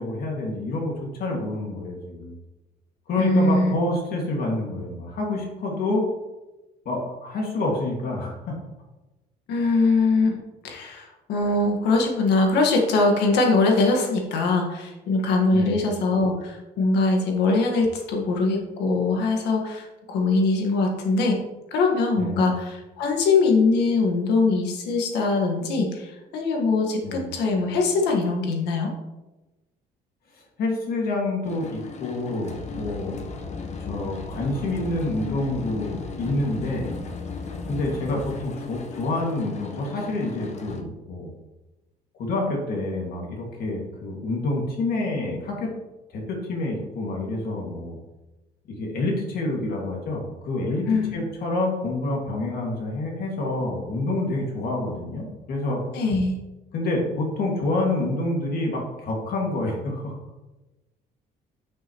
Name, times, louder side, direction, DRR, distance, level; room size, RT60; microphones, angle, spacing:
voice 1, 0.0-2.4 3.1-6.1 6.9-8.5 15.5-15.9 22.1-22.5 27.0-27.3 30.3-33.2 33.8-37.0 37.7-41.3 42.2-45.7 46.1-48.0 48.8-55.8 56.7-60.1, left 2 dB, 65° left, -1 dB, 2.1 m, -28 dB
voice 2, 3.2-3.7 9.5-10.4 10.6-21.4 21.7-28.9 50.9-51.2 55.9-56.4, left 3 dB, 85° left, 1 dB, 1.5 m, -22 dB
sound 1, 31.4-40.8, left 4 dB, 40° left, 1.0 m, -36 dB
9.6 x 5.7 x 3.0 m, 1.1 s
cardioid pair, 110°, 17 cm